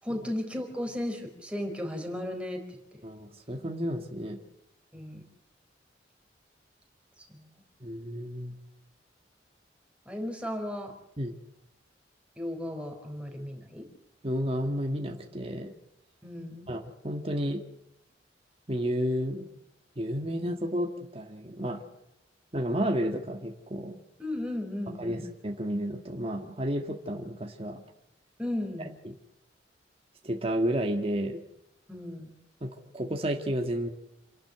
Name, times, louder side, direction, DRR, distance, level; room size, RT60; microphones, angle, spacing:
voice 1, 0.0-3.0 4.9-5.2 7.2-7.5 10.1-10.9 12.4-13.9 16.2-16.7 24.2-25.2 28.4-29.0 31.9-32.4, left 1 dB, 5° right, 2 dB, 4.2 m, -35 dB
voice 2, 3.0-4.4 7.8-8.6 11.2-11.3 14.2-15.7 16.7-17.6 18.7-19.5 19.9-21.8 22.5-24.0 25.0-27.8 29.0-29.2 30.2-31.4 32.6-33.9, equal, 30° right, 3 dB, 1.7 m, -31 dB
28.0 x 11.5 x 8.0 m, 0.90 s
head